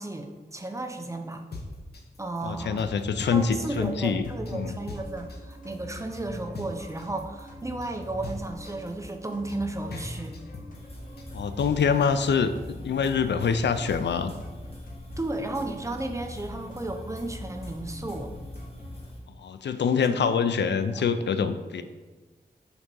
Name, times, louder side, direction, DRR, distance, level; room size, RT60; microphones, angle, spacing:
voice 1, 0.0-1.4 2.2-2.9 3.3-10.4 15.2-18.3 20.1-20.3 20.6-21.0, right 2 dB, 15° right, 4 dB, 0.6 m, -34 dB
sound 1, 1.3-12.3, left 2 dB, 65° left, 0.8 m, -41 dB
voice 2, 2.4-4.7 11.3-14.3 19.4-21.8, left 6 dB, 85° left, 11 dB, 0.4 m, -25 dB
sound 2, 2.4-19.0, left 1 dB, 50° left, 1.8 m, -43 dB
sound 3, 10.7-19.2, equal, 35° left, 1.7 m, -45 dB
6.0 x 4.0 x 5.4 m, 1.3 s
wide cardioid pair, 105°, 18 cm